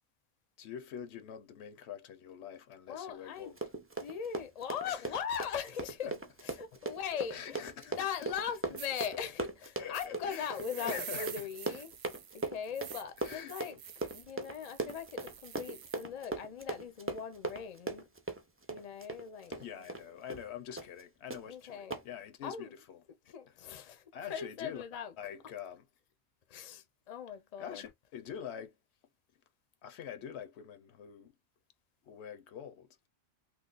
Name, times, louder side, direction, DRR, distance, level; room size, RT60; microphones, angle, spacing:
voice 1, 0.6-3.6 4.8-5.2 6.0-6.2 7.3-8.0 9.1-9.2 9.8-11.8 13.2-13.5 19.5-23.3 24.1-24.9 25.2-25.8 27.6-28.8 29.8-31.3 32.1-33.1, left 9 dB, 85° left, 0.9 m, -45 dB
voice 2, 2.9-3.5 4.0-6.1 6.4-7.7 8.0-11.9 12.3-13.8 14.1-18.1 18.7-19.9 21.5-22.0 22.4-22.7 23.3-24.0 24.3-25.1 26.5-27.8, left 7 dB, 45° left, 0.6 m, -40 dB
Run, 3.4-20.0 20.3-20.5 20.8-21.0 21.3-21.4 21.9-22.0, right 2 dB, 20° right, 0.3 m, -39 dB
sound 1, 8.4-8.5 8.8-9.1 9.9-16.1, right 9 dB, 65° right, 0.7 m, -47 dB
3.1 x 2.0 x 3.8 m
omnidirectional pair, 1.1 m